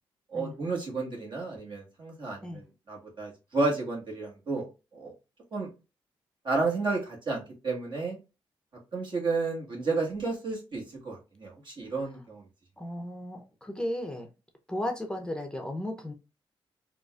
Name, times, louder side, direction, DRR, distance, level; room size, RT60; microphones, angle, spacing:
voice 1, 0.3-4.7 4.9-5.1 5.5-5.7 6.4-8.2 8.9-12.4, right 3 dB, 55° right, -1 dB, 1.5 m, -32 dB
voice 2, 12.8-14.3 14.7-16.1, left 1 dB, 10° left, 4 dB, 0.6 m, -35 dB
3.7 x 2.4 x 2.4 m, 0.29 s
cardioid pair, 70°, 10 cm